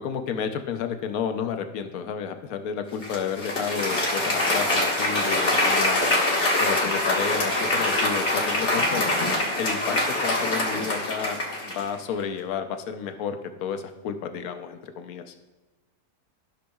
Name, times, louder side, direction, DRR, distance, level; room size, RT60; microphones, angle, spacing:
voice 1, 0.0-6.0 6.6-9.1 9.6-11.4 11.6-15.3, left 7 dB, 70° left, 7 dB, 1.1 m, -31 dB
Applause, 3.0-11.9, left 1 dB, 45° left, 1.6 m, -24 dB
13.0 x 6.2 x 2.3 m, 1.1 s
omnidirectional pair, 1.7 m